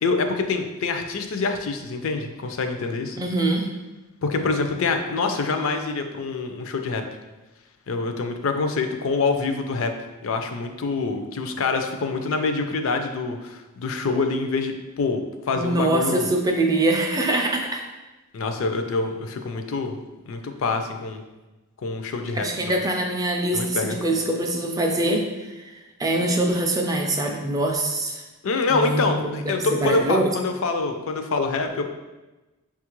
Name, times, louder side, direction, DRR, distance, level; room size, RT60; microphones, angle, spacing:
voice 1, 0.0-3.2 4.2-7.0 7.9-9.9 10.2-16.3 18.3-20.0 20.3-21.2 21.8-22.8 23.5-24.0 28.4-31.8, left 3 dB, 65° left, 6 dB, 0.4 m, -26 dB
voice 2, 3.1-3.7 15.6-17.8 22.3-28.2 28.7-30.2, right 2 dB, 15° right, 2 dB, 0.3 m, -24 dB
5.7 x 2.4 x 3.0 m, 1.1 s
head